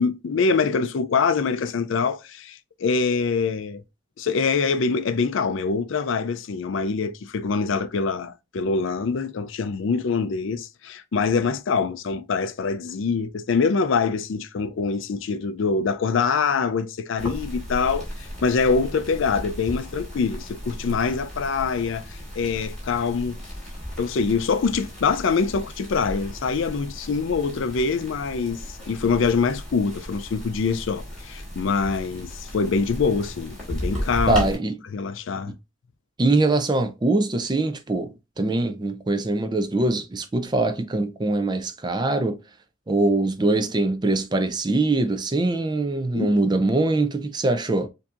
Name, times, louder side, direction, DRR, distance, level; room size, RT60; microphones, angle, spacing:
voice 1, 0.0-3.8 4.2-23.4 24.0-34.5 34.9-35.5 46.1-46.4, left 5 dB, 65° left, 0.4 m, -24 dB
sound 1, 17.2-34.5, equal, 5° left, 2.5 m, -35 dB
voice 2, 34.3-34.8 36.2-42.4 42.9-47.9, right 2 dB, 20° right, 0.4 m, -23 dB
7.1 x 2.7 x 2.4 m
head